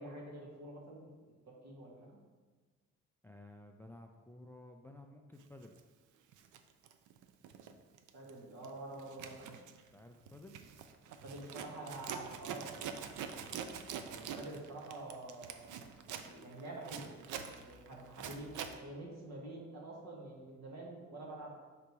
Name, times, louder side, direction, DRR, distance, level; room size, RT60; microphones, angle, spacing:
voice 1, 0.0-2.1 8.1-9.5 11.0-13.4 14.1-17.1 17.5-21.5, right 2 dB, 60° right, -3 dB, 1.9 m, -48 dB
voice 2, 3.2-5.8 9.9-10.6 14.1-14.4, left 1 dB, 5° left, 3 dB, 0.4 m, -54 dB
Zipper (clothing), 5.6-5.8 6.3-7.7 8.0-8.3 8.6-18.8, right 8 dB, 80° right, 0.5 m, -45 dB
5.7 x 3.9 x 4.7 m, 1.4 s
cardioid pair, 90°, 30 cm